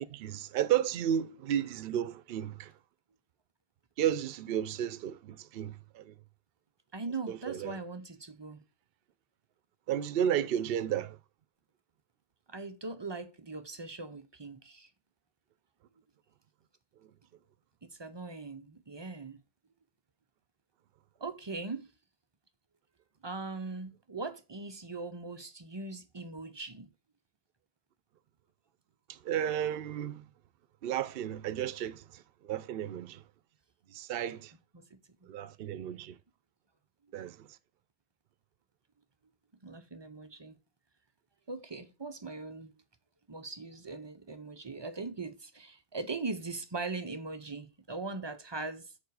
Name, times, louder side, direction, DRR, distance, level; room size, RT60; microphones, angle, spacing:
voice 1, 0.1-2.7 4.0-6.2 7.3-7.8 9.9-11.2 29.1-30.2 30.8-33.2 33.9-34.5 35.3-36.2 37.1-37.5, right 10 dB, 65° right, 0.7 m, -33 dB
voice 2, 6.9-8.6 12.5-14.9 17.9-19.4 21.2-21.9 23.2-26.9 34.7-35.3 39.6-40.6 41.5-42.7 43.3-48.9, right 3 dB, 35° right, 0.5 m, -40 dB
7.1 x 4.7 x 4.6 m
omnidirectional pair, 1.2 m